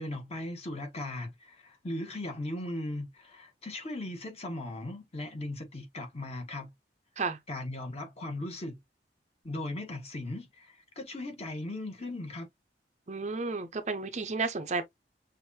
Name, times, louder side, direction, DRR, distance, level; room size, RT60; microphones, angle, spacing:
voice 1, 0.0-6.7 7.5-8.8 9.4-12.5, left 1 dB, 35° left, 1.5 m, -38 dB
voice 2, 13.1-14.8, right 4 dB, 40° right, 0.6 m, -32 dB
6.3 x 2.5 x 2.8 m
head